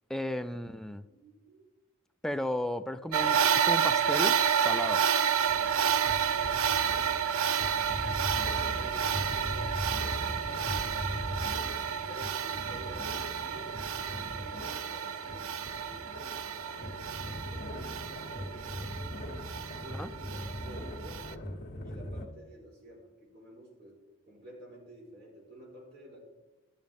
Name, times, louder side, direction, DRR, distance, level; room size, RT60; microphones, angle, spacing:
voice 1, 0.1-1.1 2.2-5.0 20.0-20.1, left 1 dB, ahead, 9 dB, 0.3 m, -34 dB
voice 2, 1.1-1.7 6.2-7.2 7.8-11.5 11.8-13.1 13.4-19.2 19.7-21.5 21.8-24.0 24.3-26.2, right 1 dB, 50° right, -3 dB, 4.4 m, -51 dB
sound 1, 3.1-21.3, right 8 dB, 75° right, 0.5 m, -30 dB
sound 2, 5.5-22.3, equal, 50° left, 1.8 m, -40 dB
12.5 x 11.5 x 3.6 m, 1.1 s
head